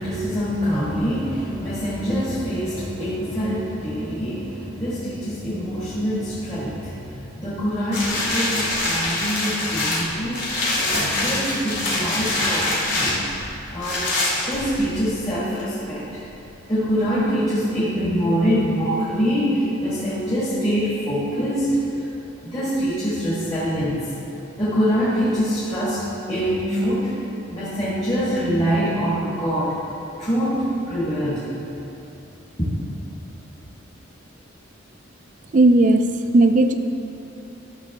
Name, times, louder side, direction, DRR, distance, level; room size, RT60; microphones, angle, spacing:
voice 1, 0.0-10.4 10.7-13.2 13.7-14.1 14.5-16.2 16.7-21.8 22.4-24.1 24.6-27.1 27.5-29.8 30.2-31.4, equal, 25° left, -10 dB, 1.7 m, -24 dB
sound 1, 7.9-15.1 15.6-15.7, left 2 dB, 55° left, 2.2 m, -24 dB
voice 2, 35.5-36.1 36.3-36.7, right 2 dB, 40° right, 8 dB, 0.4 m, -15 dB
13.0 x 6.5 x 3.6 m, 2.9 s
head